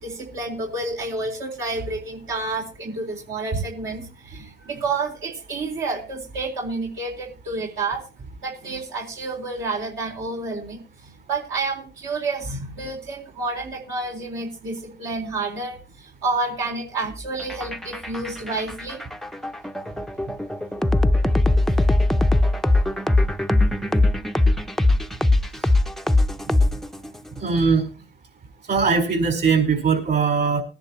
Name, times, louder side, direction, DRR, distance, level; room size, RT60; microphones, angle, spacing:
voice 1, 0.0-8.0 8.4-10.8 11.3-15.8 16.2-19.0, right 3 dB, 80° right, -3 dB, 4.1 m, -29 dB
sound 1, 17.4-27.2, left 2 dB, ahead, 0.5 m, -20 dB
voice 2, 27.4-27.9 28.7-30.6, right 5 dB, 55° right, 4 dB, 4.9 m, -20 dB
21.5 x 10.5 x 2.9 m, 0.32 s
cardioid pair, 90°, 20 cm